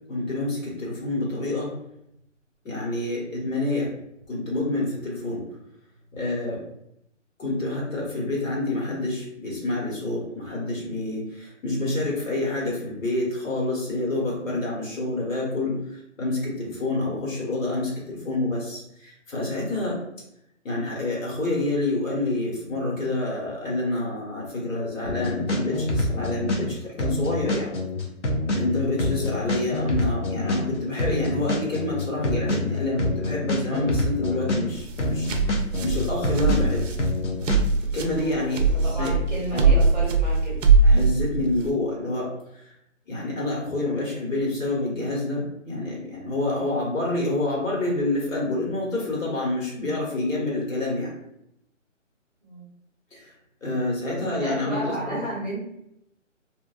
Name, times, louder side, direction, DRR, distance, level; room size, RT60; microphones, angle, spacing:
voice 1, 0.1-1.7 2.6-3.9 4.3-5.4 6.1-6.6 7.4-15.8 16.2-20.0 20.6-27.7 28.6-35.3 35.8-36.9 37.9-39.1 39.5-39.7 40.8-42.3 42.5-42.7 43.1-51.1 53.1-53.3 53.6-55.2, left 2 dB, 80° left, -3 dB, 1.3 m, -27 dB
sound 1, 25.0-26.7 27.0-30.7 31.0-34.7 35.0-37.6, left 1 dB, 65° left, 0.6 m, -26 dB
sound 2, 34.8-41.7, right 4 dB, 75° right, 0.5 m, -21 dB
voice 2, 38.1-38.6 38.8-40.7 52.4-52.7 54.1-55.6, right 1 dB, 35° right, -6 dB, 0.7 m, -33 dB
2.5 x 2.3 x 2.3 m, 0.79 s
hypercardioid pair, 180°, 39 cm